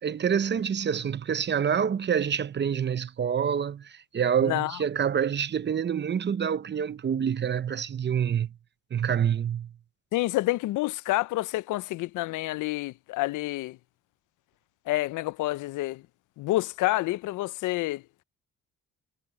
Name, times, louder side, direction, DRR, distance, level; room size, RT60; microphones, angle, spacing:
voice 1, 0.0-8.6 8.9-9.7, right 8 dB, 35° right, 0.7 m, -27 dB
voice 2, 10.1-13.8 14.9-16.0 16.4-18.0, left 18 dB, 85° left, 0.6 m, -28 dB
cardioid pair, 90°, 30 cm